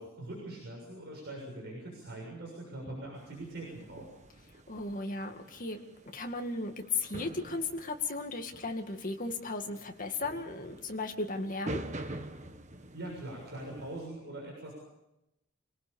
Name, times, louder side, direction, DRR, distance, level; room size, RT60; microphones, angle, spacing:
voice 1, 0.0-4.1 12.9-14.7, right 1 dB, 50° right, -2 dB, 7.0 m, -42 dB
sound 1, 3.1-14.1, right 1 dB, 35° right, 1.3 m, -46 dB
voice 2, 4.7-5.8 6.1-12.2, left 3 dB, 40° left, 4 dB, 2.2 m, -36 dB
27.0 x 18.5 x 7.2 m, 0.89 s
head